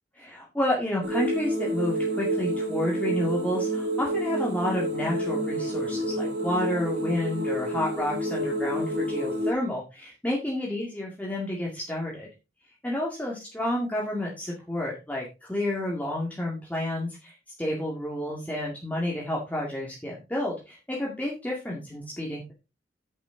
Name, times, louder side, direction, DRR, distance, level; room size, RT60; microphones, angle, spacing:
voice 1, 0.1-12.3 12.7-22.5, left 1 dB, 10° left, -3 dB, 2.1 m, -30 dB
sound 1, 1.0-9.5, right 1 dB, 70° right, 2.8 m, -29 dB
10.0 x 8.6 x 3.8 m, 0.28 s
head